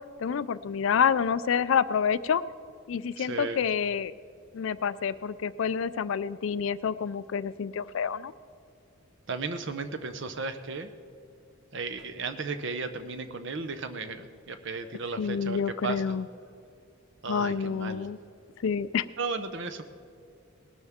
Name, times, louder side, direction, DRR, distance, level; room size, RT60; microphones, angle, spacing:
voice 1, 0.2-2.4 2.9-4.1 4.5-8.3 15.2-16.3 17.3-18.2 18.6-19.1, left 7 dB, 60° left, 16 dB, 0.4 m, -28 dB
voice 2, 3.2-3.6 9.3-10.9 11.7-16.2 17.2-18.1 19.2-19.8, right 4 dB, 55° right, 9 dB, 0.8 m, -35 dB
19.0 x 12.5 x 3.6 m, 2.5 s
head